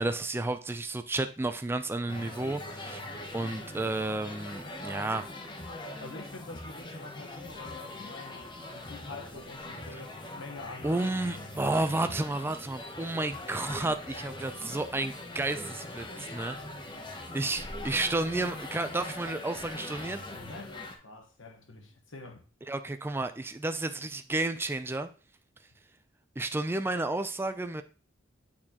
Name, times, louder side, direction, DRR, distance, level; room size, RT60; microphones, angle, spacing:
voice 1, 0.0-5.3 10.8-16.6 17.3-20.2 22.7-25.1 26.4-27.8, right 2 dB, 10° right, 0.4 m, -31 dB
sound 1, 2.1-21.0, left 2 dB, 25° left, 0.8 m, -42 dB
voice 2, 6.0-11.2 20.3-22.5, left 3 dB, 75° left, 1.2 m, -46 dB
8.5 x 4.4 x 2.9 m
head